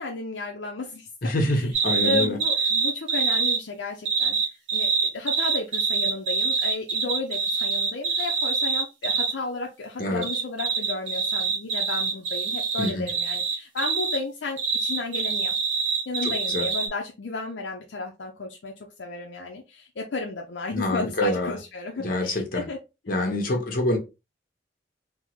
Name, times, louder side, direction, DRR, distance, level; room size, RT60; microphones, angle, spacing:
voice 1, 0.0-1.7 2.0-4.4 4.7-15.6 16.1-22.8, left 3 dB, 70° left, 0.5 m, -33 dB
voice 2, 1.2-2.4 10.0-10.2 12.8-13.1 16.2-16.7 20.7-21.6 22.0-22.6 23.1-24.0, left 1 dB, 50° left, 0.9 m, -26 dB
sound 1, 1.7-3.6 4.1-9.3 10.2-14.2 14.6-16.9, right 5 dB, 85° right, 0.7 m, -25 dB
3.5 x 2.0 x 3.0 m
head